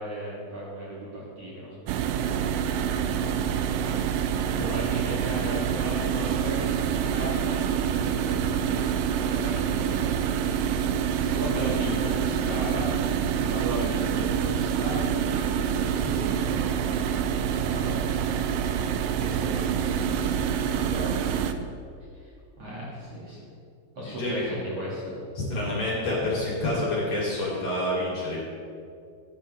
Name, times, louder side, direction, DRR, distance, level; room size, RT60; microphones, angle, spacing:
voice 1, 0.0-2.7 3.0-7.5 7.9-20.4 22.2-22.3 22.6-23.4 23.9-25.1, equal, 45° right, -7 dB, 2.9 m, -37 dB
sound 1, 1.9-21.5, right 8 dB, 90° right, 1.9 m, -26 dB
voice 2, 4.3-4.7 20.6-21.1 24.0-24.4 25.5-28.4, left 1 dB, 45° left, -6 dB, 4.5 m, -29 dB
16.5 x 11.0 x 3.6 m, 2.4 s
omnidirectional pair, 4.5 m